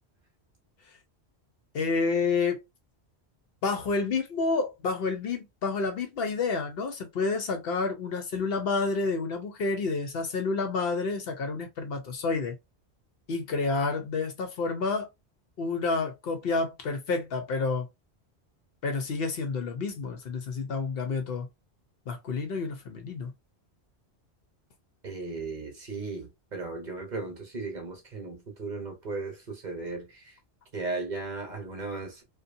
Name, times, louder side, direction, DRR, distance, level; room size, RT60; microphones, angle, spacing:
voice 1, 1.7-2.6 3.6-12.6 13.3-15.1 15.6-17.9 18.8-21.5 22.1-23.3, left 4 dB, 65° left, 0.8 m, -29 dB
voice 2, 25.0-30.4 30.7-32.2, right 3 dB, 45° right, 0.9 m, -36 dB
2.6 x 2.2 x 2.5 m
omnidirectional pair, 1.1 m